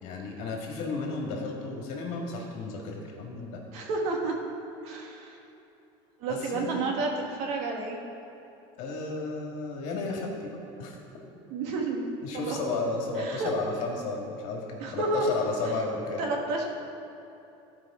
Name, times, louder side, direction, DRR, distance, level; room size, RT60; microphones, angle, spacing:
voice 1, 0.0-3.6 6.3-6.9 8.8-11.0 12.2-16.2, left 3 dB, 60° left, 0 dB, 1.8 m, -33 dB
voice 2, 3.7-4.3 4.8-5.4 6.2-8.0 11.5-12.0 12.3-12.6 13.2-13.5 14.8-15.3 16.2-16.7, right 3 dB, 60° right, 1 dB, 1.5 m, -30 dB
14.0 x 4.9 x 4.9 m, 2.8 s
cardioid pair, 145°, 13 cm